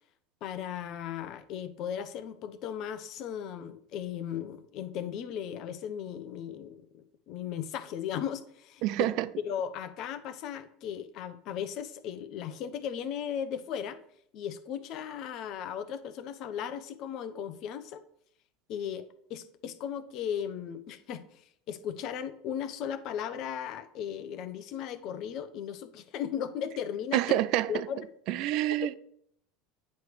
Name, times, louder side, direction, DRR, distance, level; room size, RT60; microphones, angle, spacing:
voice 1, 0.4-8.8 9.4-14.0 14.3-18.0 18.7-19.0 19.3-27.4 27.7-28.1 28.8-29.0, left 9 dB, 55° left, 0.7 m, -36 dB
voice 2, 8.8-9.3 27.1-27.8 28.3-28.9, right 14 dB, 60° right, 0.3 m, -27 dB
9.4 x 3.2 x 4.6 m
hypercardioid pair, 85°, 0 cm